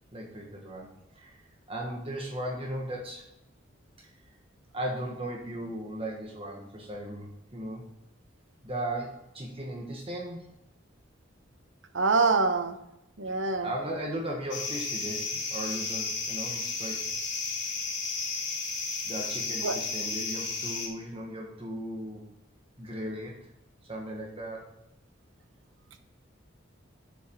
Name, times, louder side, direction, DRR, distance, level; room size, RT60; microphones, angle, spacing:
voice 1, 0.1-0.9 1.1-1.4 1.7-3.3 4.0-4.1 4.7-7.9 8.6-10.5 13.2-13.4 13.6-17.1 19.0-22.3 22.8-23.5 23.8-24.7, right 1 dB, 30° right, -1 dB, 1.5 m, -37 dB
voice 2, 11.9-12.8 13.2-13.7 19.6-19.8, right 4 dB, 70° right, 8 dB, 1.0 m, -25 dB
sound 1, 14.5-20.9, left 4 dB, 65° left, 2.5 m, -33 dB
8.1 x 7.0 x 4.6 m, 0.83 s
head